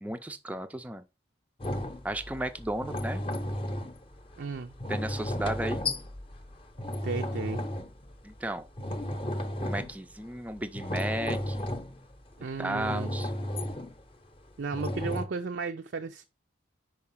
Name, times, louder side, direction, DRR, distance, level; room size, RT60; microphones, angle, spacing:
voice 1, 0.0-1.0 2.0-3.2 4.9-5.9 8.2-8.7 9.6-11.7 12.6-13.3, right 1 dB, 10° right, 0.4 m, -34 dB
sound 1, 1.6-8.4 8.7-10.2 10.5-12.3 12.7-14.0 14.7-15.2, left 1 dB, 30° left, 0.7 m, -34 dB
voice 2, 4.4-4.7 7.0-7.6 12.4-13.2 14.6-16.2, right 4 dB, 60° right, 0.5 m, -34 dB
5.2 x 4.7 x 5.6 m
head